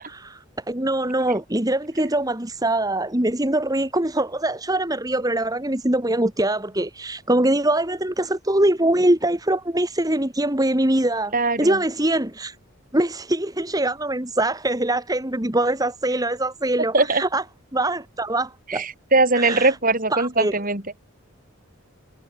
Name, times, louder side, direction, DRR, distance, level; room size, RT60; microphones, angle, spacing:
voice 1, 0.1-11.3 11.6-12.6 12.9-17.4 17.7-18.9 19.3-19.8 20.1-20.5, right 1 dB, 15° right, 1.9 m, -23 dB
voice 2, 11.3-11.8 16.9-17.2 18.7-20.8, right 3 dB, 40° right, 5.6 m, -20 dB
head